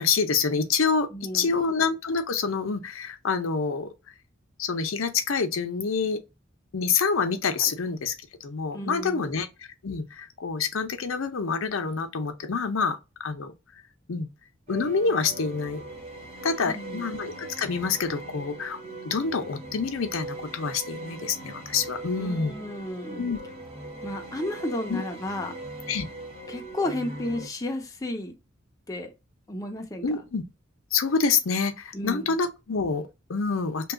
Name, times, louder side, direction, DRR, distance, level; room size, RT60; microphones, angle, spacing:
voice 1, 0.0-1.1 1.3-3.9 4.6-6.2 6.7-8.1 8.4-9.5 9.8-13.0 13.2-13.5 14.1-14.3 14.7-15.8 16.4-18.8 19.0-22.5 23.1-23.4 24.9-25.0 25.9-26.1 30.0-30.4 30.9-33.9, left 5 dB, 80° left, 0.6 m, -27 dB
voice 2, 1.1-1.5 8.7-9.3 16.6-17.1 22.2-23.3 24.0-25.6 26.5-28.3 28.9-29.1 29.5-30.0 31.9-32.3, left 1 dB, 15° left, 0.6 m, -33 dB
sound 1, 14.7-27.5, right 1 dB, 30° right, 0.8 m, -40 dB
2.9 x 2.3 x 3.6 m
head